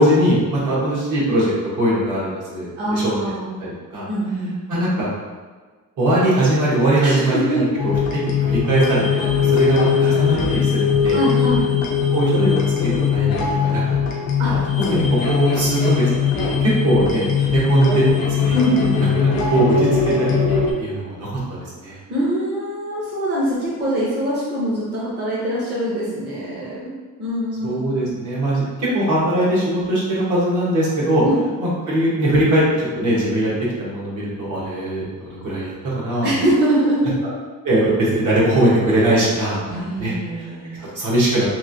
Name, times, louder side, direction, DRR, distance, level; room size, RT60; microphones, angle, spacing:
voice 1, 0.0-1.5 1.8-3.3 3.6-4.1 4.7-5.1 6.0-7.6 8.1-11.2 12.1-12.5 12.8-14.0 14.5-14.6 14.9-18.5 19.2-19.9 20.2-20.3 20.8-22.0 27.6-31.2 31.6-33.5 33.8-36.3 37.6-39.6 40.0-40.1 40.9-41.5, right 1 dB, 60° right, -6 dB, 1.0 m, -20 dB
voice 2, 2.8-3.5 4.1-4.6 7.0-7.6 11.1-11.7 14.4-14.6 18.5-19.0 22.1-26.9 27.2-28.1 31.2-31.4 36.2-37.2 39.7-40.9, right 1 dB, 30° right, -7 dB, 0.6 m, -23 dB
sound 1, 7.8-20.7, left 6 dB, 80° left, 0.6 m, -20 dB
3.1 x 2.5 x 2.5 m, 1.4 s
cardioid pair, 150°, 34 cm